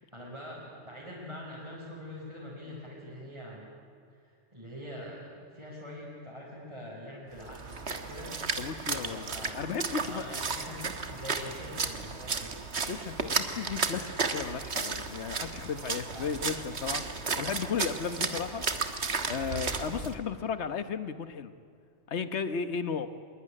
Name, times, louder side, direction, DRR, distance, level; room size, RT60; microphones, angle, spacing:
voice 1, 0.1-3.7 4.1-8.4 8.9-9.5 10.0-12.6 16.1-16.5, equal, 25° right, -7 dB, 5.1 m, -44 dB
Splash splatter, 7.4-20.1, right 4 dB, 65° right, 1.8 m, -34 dB
voice 2, 8.6-10.4 12.9-21.5 22.1-23.1, left 6 dB, 65° left, 11 dB, 1.4 m, -35 dB
25.5 x 21.5 x 10.0 m, 2.2 s
omnidirectional pair, 1.2 m